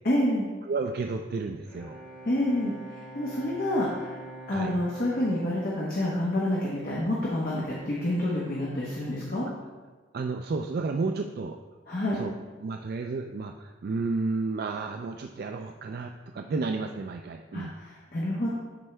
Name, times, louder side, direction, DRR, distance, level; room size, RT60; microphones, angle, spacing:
voice 1, 0.0-0.5 2.2-2.7 3.1-4.2 4.5-9.5 11.9-12.2 17.5-18.5, left 1 dB, 45° left, -5 dB, 1.1 m, -28 dB
voice 2, 0.6-2.0 4.5-4.7 10.1-11.6 12.1-12.3 12.6-17.7, right 3 dB, 50° right, 5 dB, 0.3 m, -32 dB
Bowed string instrument, 1.6-7.2, right 1 dB, 10° left, 1.3 m, -46 dB
12.0 x 4.5 x 3.3 m, 1.3 s
head